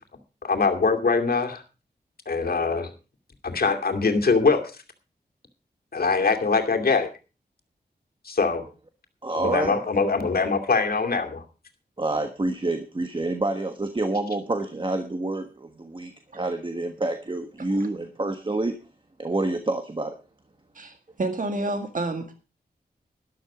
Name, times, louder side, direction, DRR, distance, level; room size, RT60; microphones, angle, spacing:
voice 1, 0.4-1.6 2.3-2.9 3.4-4.6 5.9-7.1 8.2-8.6 9.3-11.4, left 4 dB, 65° left, 3 dB, 2.5 m, -23 dB
voice 2, 9.2-9.8 12.0-18.7 19.2-20.1, right 2 dB, 30° right, 7 dB, 1.3 m, -28 dB
voice 3, 20.8-22.3, right 2 dB, 50° right, 6 dB, 1.9 m, -29 dB
13.0 x 11.5 x 4.9 m, 0.32 s
wide cardioid pair, 110°, 17 cm